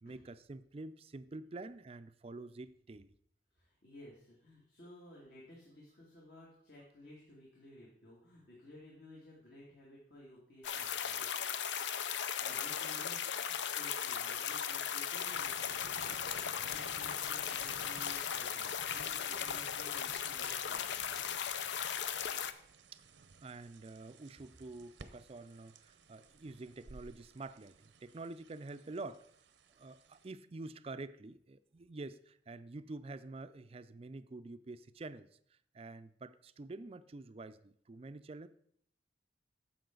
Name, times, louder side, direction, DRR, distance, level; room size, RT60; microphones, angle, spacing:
voice 1, 0.0-3.1 22.9-23.0 23.4-29.3 29.8-38.5, right 3 dB, 30° right, 13 dB, 0.4 m, -47 dB
voice 2, 3.5-11.4 12.4-21.3, left 1 dB, 60° left, -6 dB, 2.4 m, -56 dB
sound 1, 10.6-22.5, left 8 dB, 80° left, 0.5 m, -37 dB
sound 2, 12.9-30.3, right 3 dB, 80° right, 0.7 m, -58 dB
10.5 x 7.1 x 3.9 m, 0.65 s
head